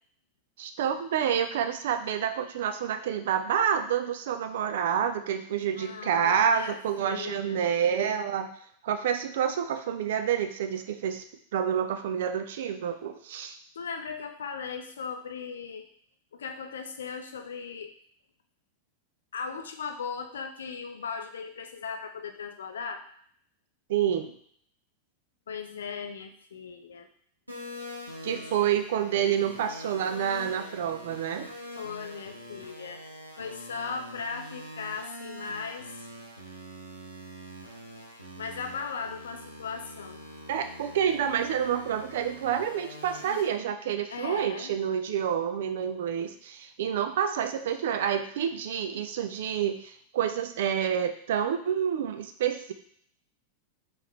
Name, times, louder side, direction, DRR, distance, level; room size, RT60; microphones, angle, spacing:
voice 1, 0.6-8.5 8.8-11.2 11.5-13.6 23.9-24.3 28.2-31.5 40.5-52.7, right 8 dB, 55° right, 8 dB, 0.4 m, -28 dB
voice 2, 5.8-7.6 13.8-15.9 16.3-17.9 19.3-23.0 25.5-27.1 28.3-28.6 31.8-33.0 33.4-35.9 38.4-40.2 44.1-44.7, left 5 dB, 65° left, 6 dB, 0.4 m, -37 dB
sound 1, 27.5-43.4, equal, 85° right, 0.8 m, -44 dB
3.7 x 3.1 x 3.1 m, 0.63 s
figure-of-eight pair, 90°, 0 cm